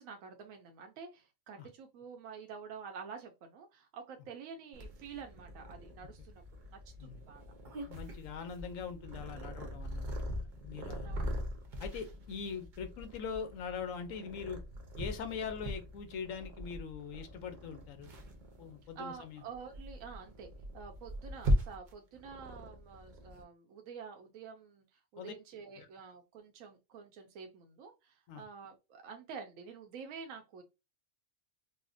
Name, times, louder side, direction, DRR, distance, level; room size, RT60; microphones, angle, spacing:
voice 1, 0.0-6.4 6.7-7.4 11.0-11.3 19.0-20.5 20.7-30.6, right 6 dB, 85° right, 1.0 m, -48 dB
Purr, 4.7-23.4, equal, 45° right, 0.7 m, -40 dB
voice 2, 7.9-11.2 11.8-14.6 15.0-18.1 18.6-19.4 25.2-25.3 25.8-25.9 28.3-28.4, left 6 dB, 75° left, 1.0 m, -42 dB
4.0 x 2.1 x 2.5 m
omnidirectional pair, 1.4 m